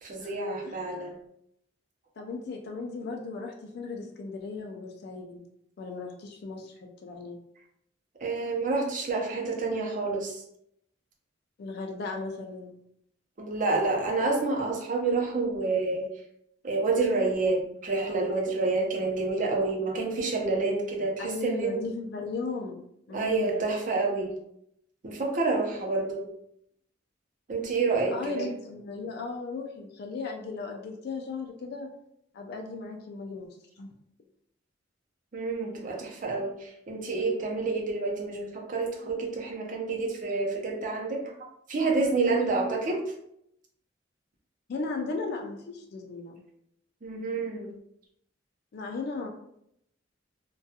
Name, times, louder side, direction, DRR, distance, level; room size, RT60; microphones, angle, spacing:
voice 1, 0.0-1.2 8.2-10.4 13.4-16.1 16.6-21.8 23.1-24.4 25.0-26.3 27.5-28.5 35.3-43.1 47.0-47.7, right 3 dB, 45° right, -1 dB, 0.6 m, -28 dB
voice 2, 2.2-5.4 5.8-7.4 11.6-12.7 21.2-22.8 23.1-23.6 28.1-31.9 32.3-33.5 33.8-33.9 44.7-46.3 48.7-49.3, left 3 dB, 55° left, 2 dB, 0.3 m, -36 dB
2.2 x 2.2 x 2.7 m, 0.74 s
head